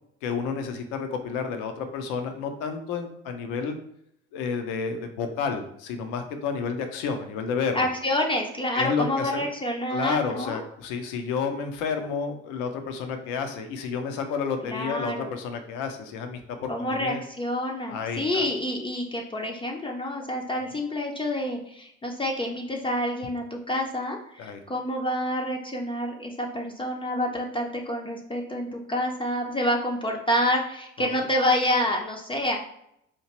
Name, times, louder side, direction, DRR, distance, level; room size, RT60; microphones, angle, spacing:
voice 1, 0.2-3.8 4.3-7.9 8.7-9.5 9.9-17.2 17.9-18.5 24.4-24.6 31.0-31.1, left 5 dB, 55° left, 6 dB, 0.8 m, -30 dB
voice 2, 7.7-10.6 14.6-15.3 16.7-32.6, left 1 dB, 15° left, 0 dB, 0.7 m, -28 dB
4.4 x 2.8 x 3.0 m, 0.76 s
figure-of-eight pair, 60°, 36 cm